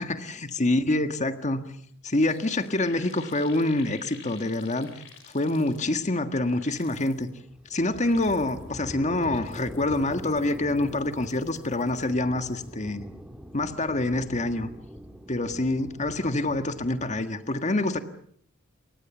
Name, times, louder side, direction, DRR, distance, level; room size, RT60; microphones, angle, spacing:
voice 1, 0.0-1.6 2.0-4.9 5.3-7.3 7.7-13.0 13.5-14.7 15.3-18.0, left 2 dB, 35° left, 8 dB, 1.7 m, -26 dB
sound 1, 1.8-1.9 2.1-6.1 6.5-7.3 7.8-8.7 9.1-12.1 12.4-12.7, left 6 dB, 65° left, 6.4 m, -51 dB
sound 2, 5.9-17.2, equal, 5° right, 2.3 m, -44 dB
29.0 x 23.5 x 7.2 m, 0.62 s
head